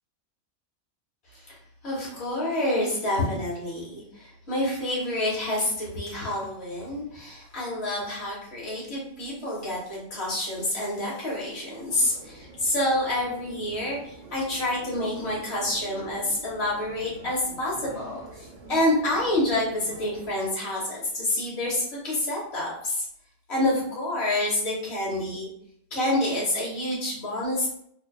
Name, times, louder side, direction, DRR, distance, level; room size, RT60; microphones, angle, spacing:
voice 1, 1.8-23.0 23.5-25.5 25.9-27.7, left 1 dB, 60° left, -5 dB, 1.1 m, -28 dB
sound 1, 11.9-20.3, right 1 dB, 70° right, 0.9 m, -46 dB
2.6 x 2.2 x 2.2 m, 0.69 s
omnidirectional pair, 1.3 m